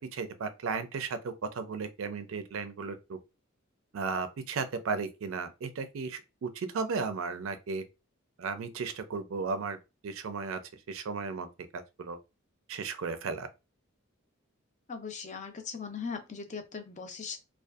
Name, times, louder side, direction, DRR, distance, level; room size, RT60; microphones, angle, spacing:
voice 1, 0.1-3.2 3.9-7.8 8.4-9.8 10.0-10.6 10.9-12.2 12.7-13.5, right 4 dB, 75° right, 0.4 m, -35 dB
voice 2, 14.9-17.4, left 5 dB, 35° left, 0.5 m, -39 dB
2.6 x 2.3 x 2.3 m
head